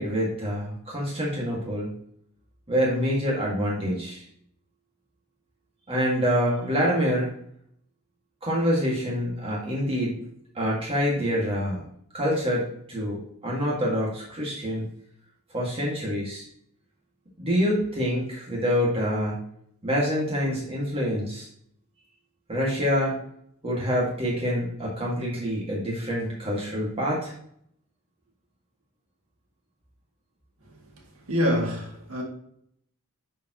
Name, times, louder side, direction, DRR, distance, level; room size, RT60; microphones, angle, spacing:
voice 1, 0.0-1.9 2.7-4.2 5.9-7.3 8.4-10.1 10.6-11.8 12.1-14.9 15.5-16.4 17.4-19.4 19.8-21.5 22.5-23.2 23.6-27.3, equal, 25° right, 2.0 m, -26 dB
voice 2, 31.3-32.2, equal, 70° right, 2.2 m, -26 dB
10.0 x 4.7 x 3.0 m
head